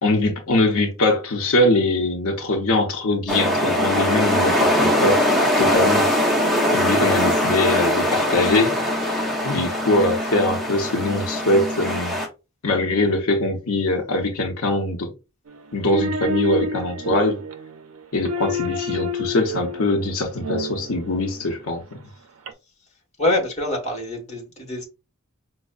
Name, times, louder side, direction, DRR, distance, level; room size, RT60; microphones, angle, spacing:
voice 1, 0.0-5.2 5.6-6.4 6.7-8.8 9.4-12.1 12.6-15.1 15.7-17.4 18.1-21.8, left 2 dB, 90° left, 0.7 m, -22 dB
sound 1, 3.3-12.3, left 1 dB, ahead, 0.7 m, -21 dB
sound 2, 15.5-21.4 22.5-22.6, equal, 75° right, 0.5 m, -29 dB
voice 2, 23.2-24.9, left 1 dB, 35° left, 1.3 m, -25 dB
5.1 x 2.0 x 2.3 m
head